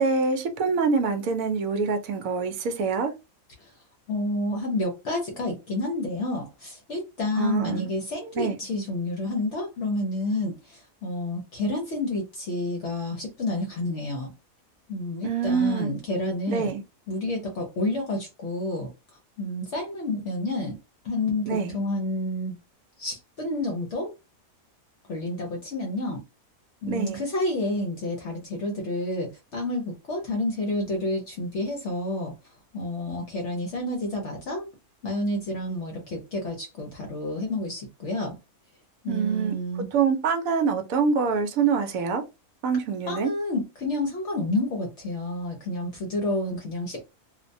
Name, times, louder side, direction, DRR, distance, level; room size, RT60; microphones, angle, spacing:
voice 1, 0.0-3.1 7.4-7.9 8.4-8.6 15.2-15.9 16.5-16.8 21.5-21.8 26.9-27.2 39.1-39.6 39.9-42.2 42.6-43.3, right 5 dB, 70° right, 0.9 m, -25 dB
voice 2, 4.1-14.3 14.9-18.9 19.4-20.8 21.0-22.6 23.0-24.1 25.1-26.2 26.8-32.3 32.7-34.7 35.0-38.4 39.0-39.9 43.1-47.1, left 1 dB, 60° left, 0.9 m, -29 dB
2.5 x 2.1 x 2.5 m
omnidirectional pair, 1.5 m